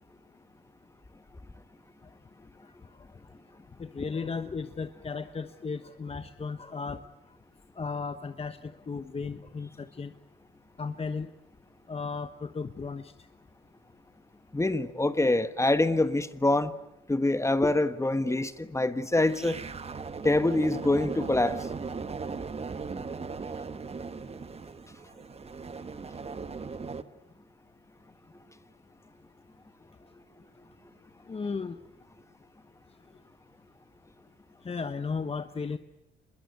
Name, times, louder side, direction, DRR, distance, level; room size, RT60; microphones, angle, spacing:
voice 1, 3.8-7.0 7.8-10.1 10.8-11.3 11.9-13.3 31.3-31.8 34.6-35.8, left 5 dB, 30° left, 9 dB, 1.2 m, -35 dB
voice 2, 14.5-16.7 17.1-19.6 20.2-21.6, left 2 dB, 15° left, 12 dB, 1.3 m, -25 dB
sound 1, 19.3-27.0, right 4 dB, 30° right, 1.4 m, -38 dB
26.0 x 21.5 x 9.4 m, 0.92 s
cardioid pair, 90°, 20 cm